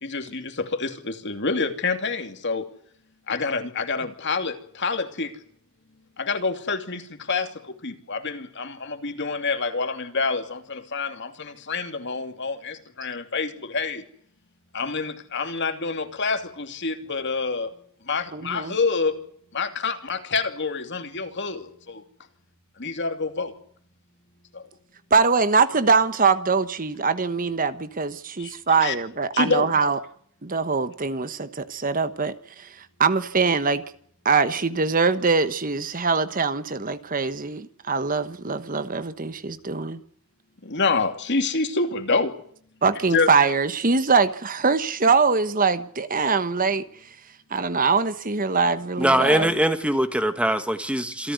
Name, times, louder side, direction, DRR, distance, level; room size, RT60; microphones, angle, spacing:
voice 1, 0.0-2.7 3.3-5.3 6.2-14.0 14.7-17.7 18.1-19.2 19.5-22.0 22.8-23.5 24.5-24.7 28.4-28.9 29.3-29.7 40.6-42.3 43.1-43.3, left 4 dB, 55° left, 2.8 m, -27 dB
voice 2, 18.3-18.7 25.1-30.0 30.4-33.8 34.2-40.0 42.8-46.8 47.5-49.5, right 4 dB, 40° right, 1.2 m, -23 dB
voice 3, 49.0-51.3, right 1 dB, 5° right, 1.6 m, -22 dB
27.5 x 14.5 x 9.5 m
head